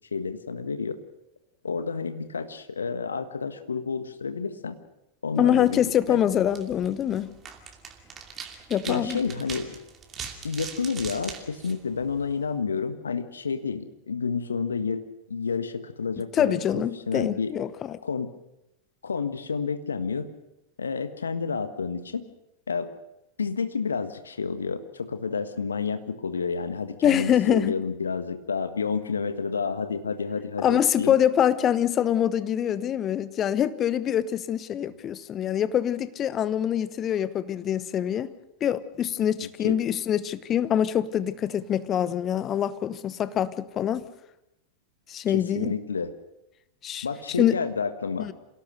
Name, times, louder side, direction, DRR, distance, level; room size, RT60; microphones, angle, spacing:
voice 1, 0.1-1.0 1.6-4.8 5.2-6.2 8.9-9.8 10.4-17.5 18.0-18.3 19.0-20.3 20.8-22.2 22.7-22.9 23.4-31.1 39.4-39.8 45.3-46.1 47.0-48.3, left 5 dB, 70° left, 1.5 m, -30 dB
voice 2, 5.4-7.3 8.7-9.2 16.3-18.0 27.0-27.7 30.6-38.3 38.6-44.0 45.1-45.7 46.8-47.1 47.4-47.6 48.2-48.3, left 10 dB, 30° left, 1.0 m, -25 dB
sound 1, 5.5-12.5, right 6 dB, 25° right, 2.7 m, -42 dB
27.5 x 17.5 x 6.5 m
figure-of-eight pair, 90°, 0 cm